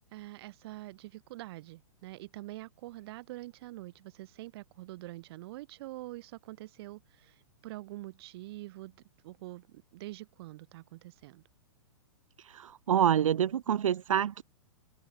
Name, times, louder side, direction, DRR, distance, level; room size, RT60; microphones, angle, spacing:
voice 1, 0.1-7.3 7.6-8.9 9.2-11.4, right 18 dB, 50° right, 8.0 m, -45 dB
voice 2, 12.4-14.4, right 9 dB, 75° right, 2.1 m, -27 dB
hypercardioid pair, 140°, 17 cm